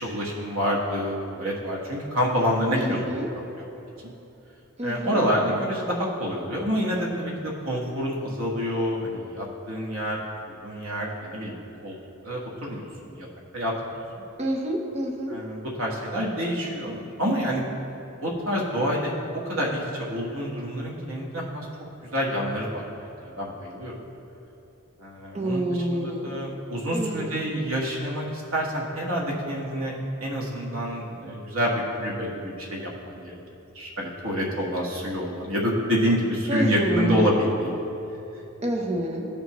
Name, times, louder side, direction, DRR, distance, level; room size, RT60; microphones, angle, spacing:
voice 1, 0.0-3.2 4.8-10.2 10.6-11.6 11.8-11.9 12.2-13.3 13.5-14.0 15.3-17.6 18.2-21.7 22.1-22.9 23.2-23.9 25.0-29.9 30.2-33.4 33.7-37.7, equal, 75° right, -3 dB, 1.5 m, -27 dB
voice 2, 2.8-3.3 4.8-5.2 14.4-15.3 25.3-26.3 26.9-27.3 36.5-37.3 38.6-39.3, right 1 dB, 30° right, 1 dB, 0.8 m, -28 dB
15.5 x 5.2 x 3.0 m, 3.0 s
head